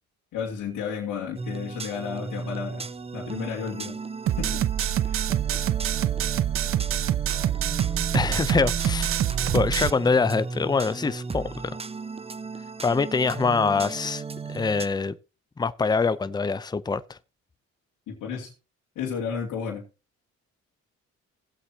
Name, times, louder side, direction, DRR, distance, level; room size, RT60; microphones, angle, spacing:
voice 1, 0.3-2.9 3.1-4.0 4.4-4.6 5.0-5.2 18.1-18.5 19.0-19.9, left 6 dB, 90° left, 2.5 m, -32 dB
sound 1, 1.4-14.9, right 4 dB, 20° right, 0.8 m, -36 dB
sound 2, 4.3-9.9, right 11 dB, 45° right, 0.4 m, -25 dB
voice 2, 8.1-9.2 9.5-11.8 12.8-14.2 14.5-15.2 15.6-17.2, left 4 dB, 15° left, 0.6 m, -24 dB
17.5 x 8.0 x 2.9 m
cardioid pair, 90°, 30 cm